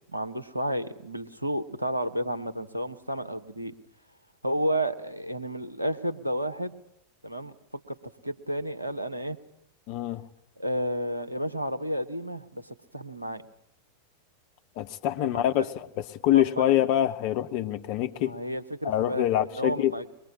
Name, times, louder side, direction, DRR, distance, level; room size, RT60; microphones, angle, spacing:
voice 1, 0.1-3.7 4.4-6.8 7.2-7.5 7.9-8.0 8.2-9.4 10.6-13.4 15.2-15.7 16.3-16.7 18.1-19.3 19.5-20.0, right 1 dB, 85° right, 9 dB, 1.5 m, -31 dB
voice 2, 9.9-10.3 14.8-18.3 18.8-19.9, left 12 dB, 45° left, 9 dB, 1.3 m, -25 dB
23.5 x 21.5 x 8.7 m, 0.74 s
figure-of-eight pair, 90°, 0 cm